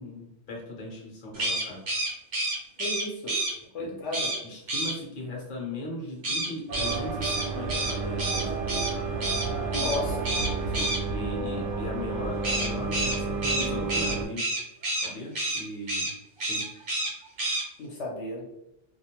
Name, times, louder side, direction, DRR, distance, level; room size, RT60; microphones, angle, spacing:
voice 1, 0.0-1.8 3.8-4.0 4.4-8.9 10.7-14.4 15.0-16.1 16.4-16.6, left 1 dB, 45° left, -2 dB, 0.8 m, -38 dB
sound 1, 1.3-3.5 4.1-4.4 4.7-4.9 6.2-8.9 9.2-9.5 9.7-10.0 10.2-11.0 12.4-15.1 15.3-15.6 15.9-16.1 16.4-17.1 17.4-17.6, right 1 dB, 50° right, 0.8 m, -29 dB
voice 2, 2.8-3.3 3.7-4.3 9.7-10.3 17.8-18.4, left 2 dB, 70° left, -2 dB, 0.9 m, -33 dB
sound 2, 6.7-14.3, right 4 dB, 75° right, 0.9 m, -31 dB
2.4 x 2.0 x 2.8 m, 0.83 s
omnidirectional pair, 1.3 m